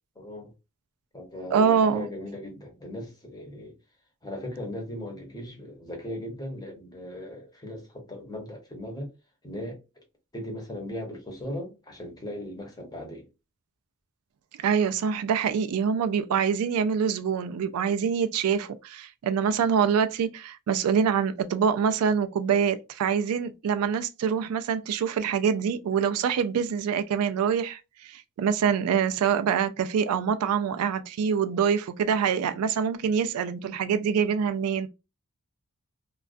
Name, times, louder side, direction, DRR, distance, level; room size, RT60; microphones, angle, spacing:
voice 1, 0.2-0.5 1.1-3.8 4.2-9.1 9.4-9.8 10.3-13.3, left 1 dB, 20° left, 0.8 m, -38 dB
voice 2, 1.5-2.1 14.6-34.9, right 7 dB, 85° right, 0.3 m, -25 dB
2.3 x 2.2 x 2.4 m
head